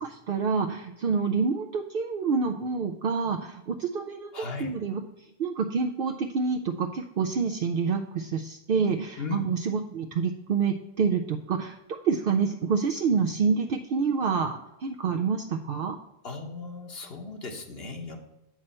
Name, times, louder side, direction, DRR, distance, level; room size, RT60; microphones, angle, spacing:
voice 1, 0.0-5.0 5.4-16.0, right 5 dB, 60° right, 3 dB, 0.8 m, -27 dB
voice 2, 4.3-4.7 9.2-9.5 16.2-18.2, left 3 dB, 65° left, 3 dB, 1.3 m, -36 dB
8.7 x 6.1 x 4.4 m, 0.94 s
omnidirectional pair, 1.1 m